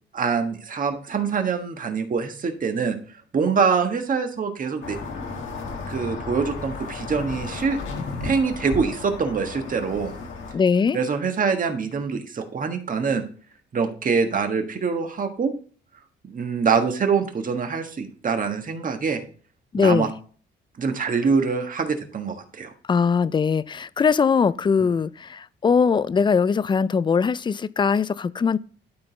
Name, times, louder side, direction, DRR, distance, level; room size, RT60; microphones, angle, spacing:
voice 1, 0.1-3.0 3.3-5.0 5.9-7.8 8.2-10.1 10.9-13.2 13.7-15.5 16.2-19.2 19.8-20.1 20.8-22.7, right 5 dB, 45° right, 1.5 m, -24 dB
sound 1, 4.8-10.5, left 3 dB, 75° left, 1.9 m, -34 dB
voice 2, 10.5-11.0 19.7-20.1 22.9-28.6, left 5 dB, 25° left, 0.4 m, -21 dB
12.0 x 4.0 x 3.9 m
cardioid pair, 90°, 20 cm